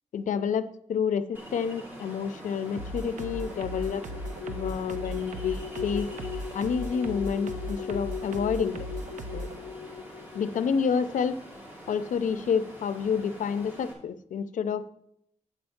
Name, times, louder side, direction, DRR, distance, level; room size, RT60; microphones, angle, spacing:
voice 1, 0.1-4.0 4.5-6.1 6.5-8.9 9.3-9.5 10.3-11.4 11.9-14.9, left 6 dB, 85° left, 13 dB, 0.5 m, -29 dB
Ocean, 1.3-13.9, equal, 15° right, 2.1 m, -45 dB
sound 1, 2.8-9.6, right 1 dB, 75° right, 0.7 m, -37 dB
sound 2, 3.0-10.8, left 7 dB, 45° left, 0.6 m, -39 dB
9.0 x 4.4 x 7.1 m, 0.73 s
wide cardioid pair, 165°, 13 cm